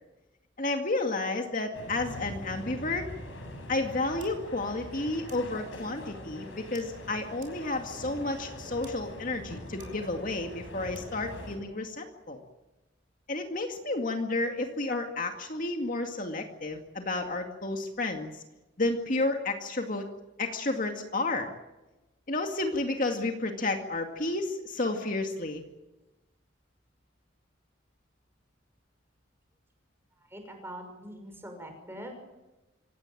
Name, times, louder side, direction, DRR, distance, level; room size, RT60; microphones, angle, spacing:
voice 1, 0.6-3.0 3.7-12.4 13.3-18.4 18.8-20.1 20.4-21.5 22.3-25.6, left 2 dB, 45° left, 4 dB, 2.2 m, -31 dB
sound 1, 1.7-11.6, left 1 dB, 85° left, 7.9 m, -43 dB
sound 2, 4.2-4.3 5.3-5.4 6.7-6.8 7.4-7.5 8.5-8.6 8.8-8.9 9.8-9.9 11.0-11.1, right 10 dB, 45° right, 4.9 m, -51 dB
voice 2, 30.3-32.1, equal, 10° right, 5 dB, 6.0 m, -43 dB
26.0 x 17.5 x 9.1 m, 1.0 s
head